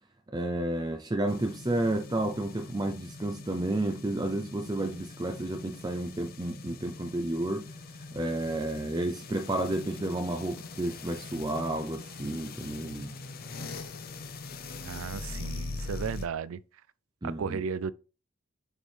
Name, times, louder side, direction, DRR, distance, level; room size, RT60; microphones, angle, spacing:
voice 1, 0.3-13.1 17.2-17.6, right 1 dB, 20° right, 0.5 m, -31 dB
sound 1, 1.3-16.3, left 3 dB, 45° left, 0.6 m, -42 dB
voice 2, 14.8-16.6 17.2-17.9, right 6 dB, 80° right, 0.4 m, -34 dB
7.2 x 4.5 x 3.3 m
head